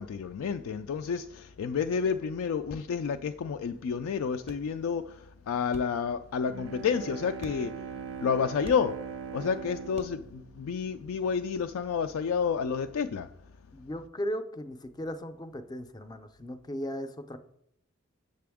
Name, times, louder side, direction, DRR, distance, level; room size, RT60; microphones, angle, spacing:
voice 1, 0.0-13.6, left 6 dB, 85° left, 0.3 m, -30 dB
sound 1, 3.6-10.4, right 2 dB, 30° right, 0.5 m, -52 dB
Bowed string instrument, 6.4-11.5, right 6 dB, 90° right, 0.6 m, -41 dB
voice 2, 13.7-17.4, equal, 20° left, 0.5 m, -37 dB
7.6 x 6.8 x 3.5 m
head